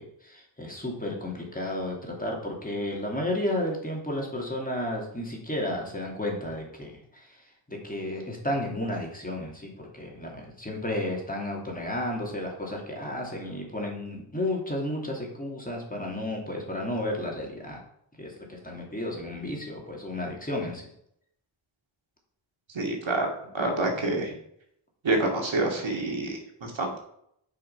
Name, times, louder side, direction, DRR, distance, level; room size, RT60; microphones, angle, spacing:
voice 1, 0.0-17.8 18.2-20.8, left 1 dB, 15° left, -1 dB, 2.8 m, -32 dB
voice 2, 22.7-23.3 23.5-24.3 25.0-27.0, right 2 dB, 65° right, 1 dB, 2.5 m, -27 dB
7.7 x 5.9 x 5.8 m, 0.72 s
cardioid pair, 70°, 49 cm